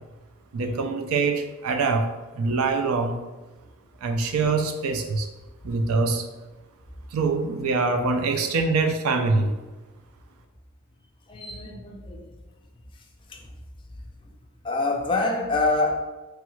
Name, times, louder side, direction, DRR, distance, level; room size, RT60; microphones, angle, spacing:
voice 1, 0.5-2.1 2.4-3.2 4.0-5.3 5.6-6.2 7.1-9.5, right 4 dB, 70° right, 5 dB, 0.4 m, -24 dB
voice 2, 11.3-12.4 12.9-13.5 14.2-14.3 14.6-16.0, left 2 dB, 20° left, 1 dB, 0.3 m, -27 dB
3.1 x 2.3 x 3.0 m, 1.2 s
head